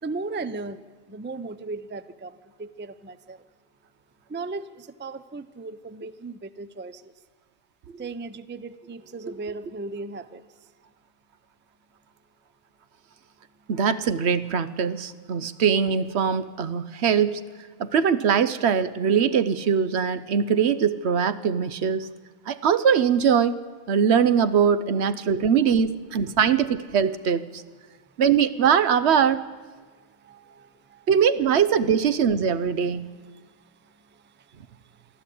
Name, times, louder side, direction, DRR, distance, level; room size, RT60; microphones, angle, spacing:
voice 1, 0.0-3.4 4.3-7.1 8.0-10.7 15.4-15.5 24.8-24.9 26.3-26.4 28.1-28.2 29.8-31.1 33.3-35.2, right 3 dB, 15° right, 14 dB, 0.4 m, -38 dB
voice 2, 13.7-17.4 17.8-22.1 22.5-23.6 23.9-27.6 28.2-29.5 31.1-33.1, right 7 dB, 75° right, 14 dB, 1.0 m, -22 dB
23.0 x 13.5 x 8.5 m, 1.4 s
omnidirectional pair, 1.1 m